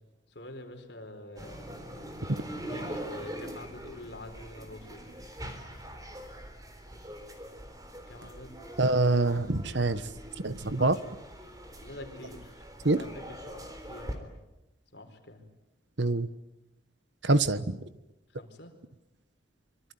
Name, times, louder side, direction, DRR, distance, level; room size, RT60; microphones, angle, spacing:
voice 1, 0.3-1.7 2.2-5.2 8.1-8.6 10.8-11.3 11.8-14.3 14.9-15.4 18.3-18.7, left 1 dB, 60° left, 6 dB, 4.5 m, -47 dB
sound 1, 1.4-14.1, equal, 20° right, 3.8 m, -43 dB
voice 2, 8.8-10.0 10.4-11.0 12.8-13.0 16.0-16.3 17.2-17.8, right 2 dB, 70° right, 14 dB, 1.3 m, -25 dB
25.5 x 24.5 x 9.3 m, 0.95 s
head